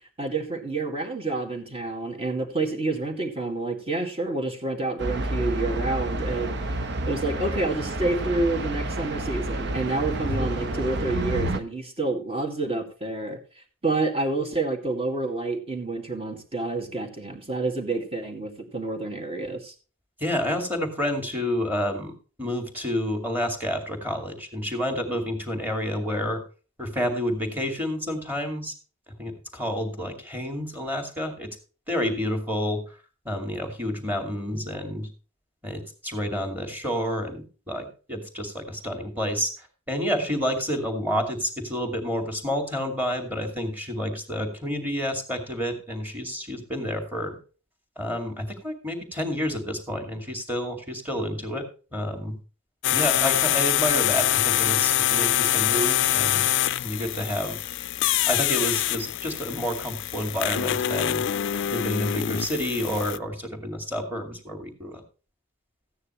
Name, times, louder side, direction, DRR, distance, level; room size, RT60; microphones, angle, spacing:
voice 1, 0.2-6.5 7.1-13.4 13.8-19.7, right 2 dB, 30° right, 4 dB, 2.1 m, -28 dB
sound 1, 5.0-11.6, right 1 dB, 55° right, 1.0 m, -29 dB
voice 2, 20.2-22.1 22.4-26.4 26.8-28.7 29.2-31.6 31.9-33.0 33.2-35.1 35.6-47.4 48.0-51.6 51.9-52.4 52.9-56.5 56.8-57.7 58.3-61.2 61.7-65.0, equal, 10° right, 5 dB, 2.5 m, -29 dB
sound 2, 52.8-63.2, left 12 dB, 60° left, 0.4 m, -25 dB
14.5 x 9.6 x 3.2 m, 0.36 s
head